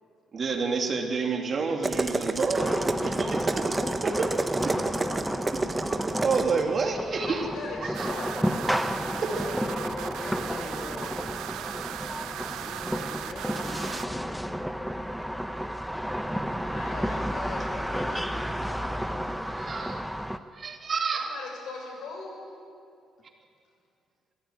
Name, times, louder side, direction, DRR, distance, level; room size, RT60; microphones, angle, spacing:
voice 1, 0.3-2.7 3.0-3.8 4.0-4.3 4.6-4.7 6.2-7.5 7.8-8.1 9.2-9.4 12.5-12.6 19.4-20.0 20.5-21.3, right 4 dB, 45° right, 3 dB, 2.9 m, -29 dB
sound 1, 1.8-6.6, right 3 dB, 25° right, 1.5 m, -29 dB
sound 2, 2.6-20.4, equal, ahead, 1.0 m, -32 dB
voice 2, 4.6-5.5 9.1-11.4 12.6-14.5 16.7-19.2, left 3 dB, 45° left, 1 dB, 2.4 m, -43 dB
voice 3, 7.1-8.5 16.4-17.9 18.2-18.4 21.1-22.4, left 3 dB, 85° left, 1 dB, 6.5 m, -41 dB
sound 3, 7.9-14.1, right 11 dB, 90° right, 0.8 m, -38 dB
25.0 x 15.0 x 9.5 m, 2.4 s
cardioid pair, 90°, 0 cm